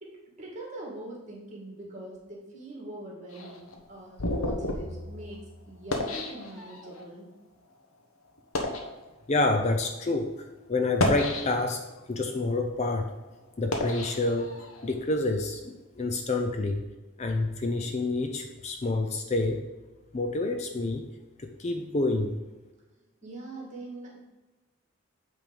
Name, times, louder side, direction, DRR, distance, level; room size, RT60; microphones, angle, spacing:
voice 1, 0.0-7.3 23.2-24.2, right 1 dB, 35° right, -3 dB, 2.2 m, -43 dB
sound 1, 3.3-7.0 7.7-7.9 8.4-8.9 9.7-9.9 10.8-11.9 12.4-14.9, left 1 dB, 80° left, 1.1 m, -32 dB
voice 2, 9.3-11.8 12.1-13.1 13.6-16.8 17.2-19.7 20.1-21.0 21.4-22.4, left 2 dB, 30° left, 4 dB, 0.5 m, -28 dB
8.7 x 3.6 x 5.3 m, 1.2 s
head